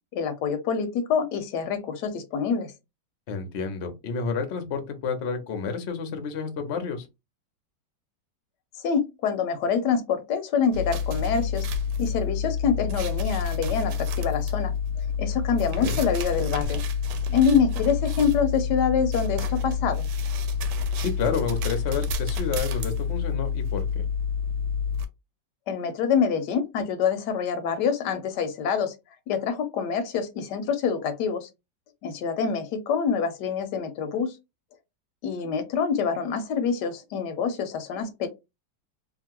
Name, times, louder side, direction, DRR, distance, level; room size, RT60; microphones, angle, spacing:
voice 1, 0.1-2.7 8.8-11.7 12.0-14.7 15.2-16.8 17.3-20.1 25.7-28.9 29.3-31.5 32.0-34.3 35.2-38.3, left 6 dB, 75° left, 1.1 m, -26 dB
voice 2, 3.3-7.1 15.8-16.0 21.0-24.0, left 5 dB, 60° left, 0.7 m, -30 dB
sound 1, 10.7-25.1, left 6 dB, 75° right, 1.1 m, -28 dB
2.9 x 2.5 x 2.8 m
omnidirectional pair, 1.9 m